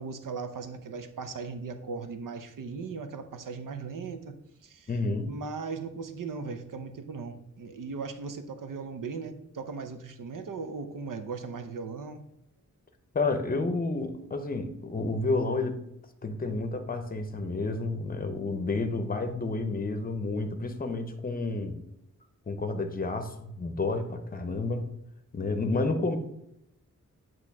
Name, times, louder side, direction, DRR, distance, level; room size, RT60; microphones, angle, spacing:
voice 1, 0.0-4.3 4.6-4.9 5.3-12.2, right 4 dB, 85° right, 8 dB, 0.8 m, -38 dB
voice 2, 4.9-5.3 13.1-15.8 16.2-21.8 22.5-24.9 25.3-26.2, left 3 dB, 30° left, 8 dB, 0.7 m, -30 dB
8.3 x 3.1 x 5.9 m, 0.81 s
wide cardioid pair, 150°, 32 cm